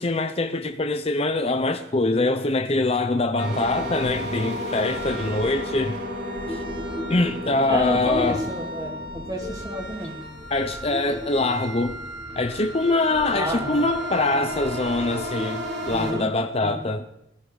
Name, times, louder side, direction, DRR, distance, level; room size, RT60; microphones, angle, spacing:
voice 1, 0.0-6.0 6.5-6.6 7.1-8.4 10.5-12.0 12.4-17.0, left 2 dB, 35° left, 0.7 m, -24 dB
sound 1, 3.4-16.1, equal, 80° right, 6.0 m, -32 dB
voice 2, 7.7-10.3 13.3-13.9 14.3-14.5 15.9-16.3 16.6-16.8, equal, 20° right, 2.5 m, -30 dB
20.0 x 13.5 x 4.0 m
head